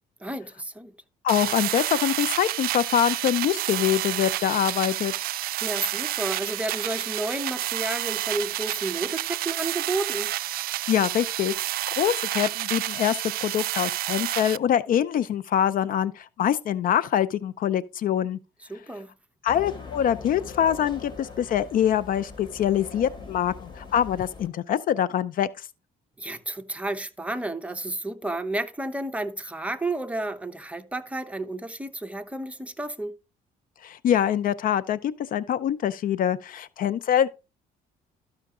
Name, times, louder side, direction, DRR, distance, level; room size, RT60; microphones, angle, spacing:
voice 1, 0.2-0.9 5.6-10.3 18.7-19.1 26.2-33.1, right 2 dB, 10° right, 0.9 m, -31 dB
voice 2, 1.2-5.1 10.9-18.4 19.4-25.7 33.8-37.3, left 10 dB, 55° left, 0.6 m, -24 dB
sound 1, 1.3-14.6, right 16 dB, 60° right, 0.4 m, -29 dB
sound 2, 19.5-24.5, left 4 dB, 25° left, 3.1 m, -42 dB
13.0 x 5.7 x 3.7 m
cardioid pair, 110°, 17 cm